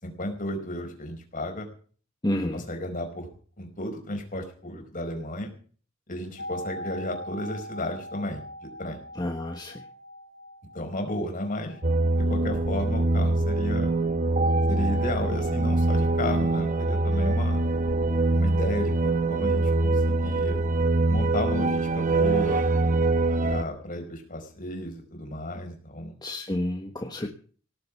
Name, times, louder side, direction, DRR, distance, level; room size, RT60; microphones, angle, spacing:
voice 1, 0.0-1.7 2.5-3.3 3.6-5.5 6.1-8.4 8.8-9.0 10.7-11.8 12.3-13.9 14.7-17.6 18.3-20.6 21.1-22.6 23.4-26.1, left 1 dB, 40° left, 3 dB, 4.9 m, -33 dB
voice 2, 2.2-2.6 9.2-9.8 26.2-27.3, left 1 dB, 20° left, 4 dB, 1.3 m, -30 dB
sound 1, 6.4-16.1 16.4-16.5, equal, 65° left, 3.4 m, -43 dB
sound 2, 11.8-23.6, right 2 dB, 40° right, 1.1 m, -24 dB
18.0 x 7.8 x 8.4 m, 0.43 s
head